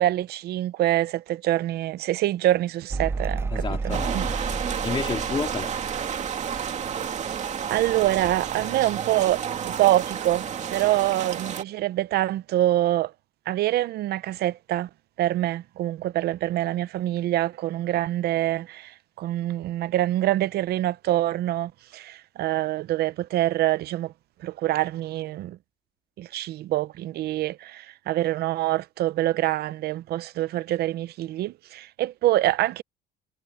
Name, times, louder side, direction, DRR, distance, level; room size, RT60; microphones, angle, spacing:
voice 1, 0.0-4.3 7.7-10.4 10.7-13.1 13.5-14.9 15.2-24.1 24.4-25.6 26.2-32.8, right 14 dB, 60° right, 0.7 m, -25 dB
Mechanical fan, 2.9-9.8 10.0-10.8, right 3 dB, 15° right, 0.5 m, -34 dB
voice 2, 3.5-5.7, left 5 dB, 25° left, 2.7 m, -31 dB
sound 1, 3.9-11.6, right 8 dB, 40° right, 2.4 m, -31 dB
cardioid pair, 135°, 19 cm